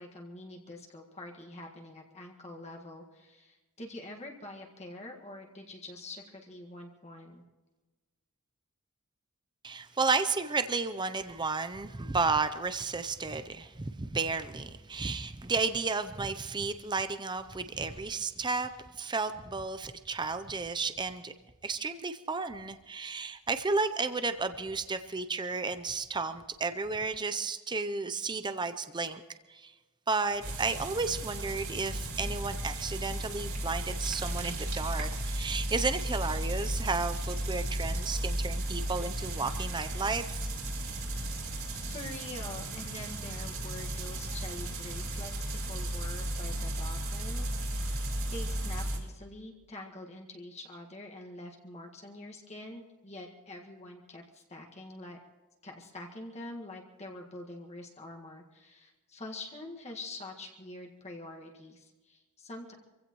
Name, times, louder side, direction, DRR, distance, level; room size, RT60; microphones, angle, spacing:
voice 1, 0.0-7.4 41.3-48.0 48.3-55.2 55.6-62.7, left 2 dB, 30° left, 0 dB, 1.8 m, -45 dB
voice 2, 9.6-21.3 21.6-29.2 29.5-29.7 30.1-40.5, right 4 dB, 20° right, 10 dB, 0.6 m, -33 dB
sound 1, 30.4-49.0, right 1 dB, 65° right, 4.7 m, -34 dB
25.5 x 16.0 x 3.1 m, 1.2 s
head